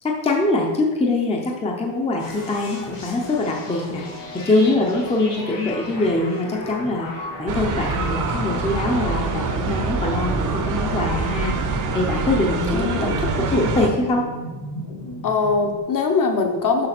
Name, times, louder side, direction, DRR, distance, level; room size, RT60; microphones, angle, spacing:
voice 1, 0.0-4.0 4.3-7.1 7.4-11.5 11.9-14.2, left 2 dB, 15° left, 0 dB, 0.6 m, -23 dB
sound 1, 2.2-15.8, left 1 dB, 60° left, 2.4 m, -36 dB
sound 2, 7.5-13.9, right 3 dB, 40° right, 0.8 m, -25 dB
voice 2, 12.7-13.1 15.2-16.9, left 4 dB, 45° left, 4 dB, 1.0 m, -21 dB
6.6 x 4.9 x 6.0 m, 1.3 s
cardioid pair, 180°, 47 cm